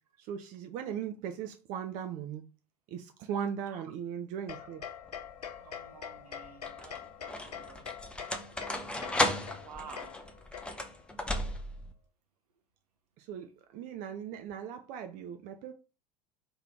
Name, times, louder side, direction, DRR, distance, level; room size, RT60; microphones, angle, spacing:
voice 1, 0.2-2.4 2.9-4.8 13.2-15.7, right 8 dB, 40° right, 0.5 m, -38 dB
sound 1, 4.5-11.1, left 8 dB, 75° left, 0.5 m, -45 dB
sound 2, 5.1-5.6 6.4-11.9, left 1 dB, 5° left, 0.6 m, -35 dB
voice 2, 5.6-7.9 9.6-10.2, right 6 dB, 70° right, 0.9 m, -50 dB
3.3 x 3.0 x 3.4 m
figure-of-eight pair, 75°, 20 cm